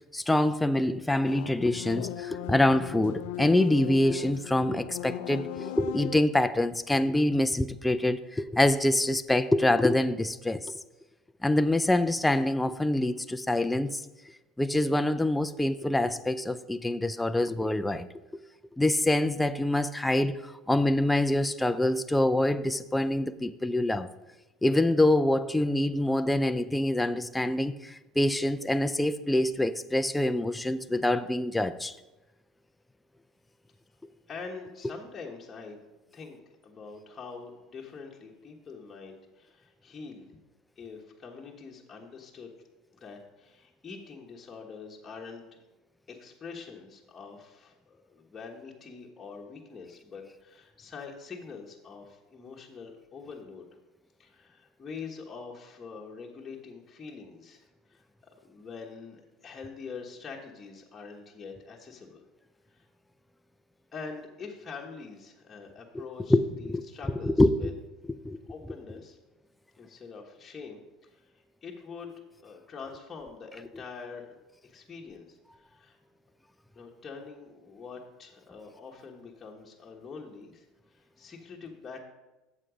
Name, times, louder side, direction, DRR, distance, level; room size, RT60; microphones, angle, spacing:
voice 1, 0.1-10.7 11.4-14.0 14.6-18.1 18.8-24.1 24.6-31.9 65.9-66.0 66.3-66.4 66.7-66.8 67.2-67.7 68.2-68.4, left 1 dB, 5° left, 0.4 m, -25 dB
sound 1, 1.2-6.3, left 14 dB, 75° left, 0.4 m, -38 dB
voice 2, 34.3-35.8 36.1-40.3 40.8-42.5 42.9-45.6 46.1-53.7 54.2-62.2 62.7-62.9 63.9-67.7 68.5-69.2 69.8-72.1 72.4-74.3 74.6-76.0 76.7-82.0, left 5 dB, 25° left, 1.2 m, -45 dB
7.6 x 7.0 x 5.1 m
supercardioid pair, 110°, 0 cm